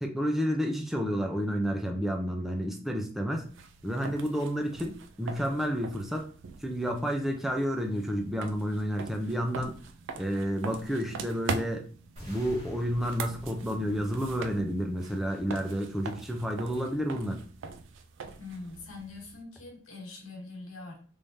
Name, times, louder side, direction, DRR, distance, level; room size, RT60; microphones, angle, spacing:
voice 1, 0.0-3.5 3.8-4.9 5.2-6.3 6.6-9.8 10.2-11.8 12.3-17.4, equal, ahead, 2 dB, 0.5 m, -30 dB
sound 1, 3.3-19.4, right 4 dB, 60° right, 0.4 m, -42 dB
sound 2, 12.2-16.2, equal, 35° right, 1.5 m, -49 dB
voice 2, 18.4-21.0, left 3 dB, 75° left, 0 dB, 1.3 m, -43 dB
3.5 x 3.2 x 2.7 m, 0.41 s
head